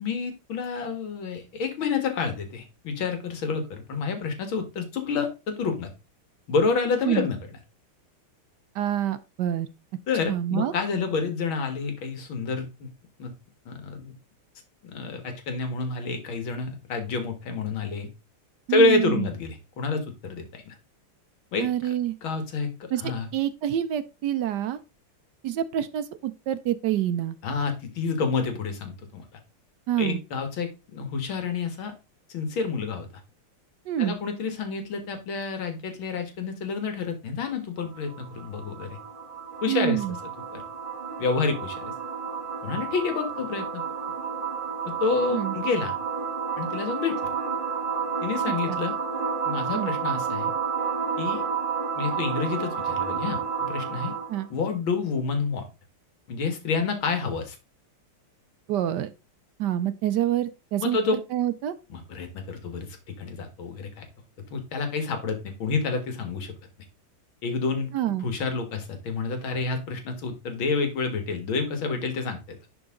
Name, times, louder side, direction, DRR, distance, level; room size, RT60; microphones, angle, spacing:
voice 1, 0.0-5.9 6.5-7.4 10.1-12.9 13.2-13.3 13.7-14.1 14.8-18.1 18.7-20.8 21.5-21.7 22.2-23.3 27.4-29.2 30.0-31.9 32.3-33.1 34.0-39.0 39.6-40.0 40.5-40.6 41.2-41.9 42.6-43.8 44.9-46.0 46.6-47.2 48.2-48.9 49.4-50.5 51.2-51.4 52.0-54.1 54.5-55.6 56.3-57.6 60.8-61.2 61.9-64.1 64.5-66.5 67.4-72.4, left 4 dB, 65° left, 2.5 m, -28 dB
voice 2, 8.7-9.7 10.3-10.7 18.7-19.3 21.6-22.2 22.9-24.8 25.4-27.4 29.9-30.2 33.9-34.2 39.7-40.2 45.3-45.5 48.7-48.8 49.7-49.9 54.3-54.5 58.7-59.1 59.6-61.0 61.3-61.7 67.9-68.3, right 11 dB, 75° right, 1.0 m, -27 dB
sound 1, 37.8-54.4, right 6 dB, 25° right, 1.5 m, -31 dB
11.0 x 4.8 x 3.8 m
omnidirectional pair, 2.4 m